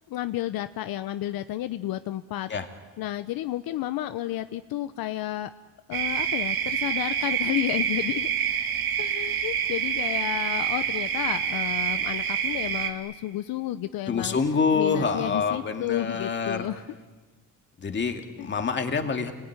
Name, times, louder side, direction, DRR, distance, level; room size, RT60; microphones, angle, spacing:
voice 1, 0.0-2.5 3.0-5.5 5.9-8.3 9.0-14.4 14.7-16.8 18.4-18.5, left 14 dB, 75° left, 11 dB, 0.9 m, -31 dB
sound 1, 5.9-12.9, right 8 dB, 75° right, 2.7 m, -27 dB
voice 2, 14.1-16.7 17.8-19.3, left 5 dB, 30° left, 5 dB, 2.5 m, -26 dB
29.5 x 20.5 x 9.8 m, 1.3 s
cardioid pair, 150°, 36 cm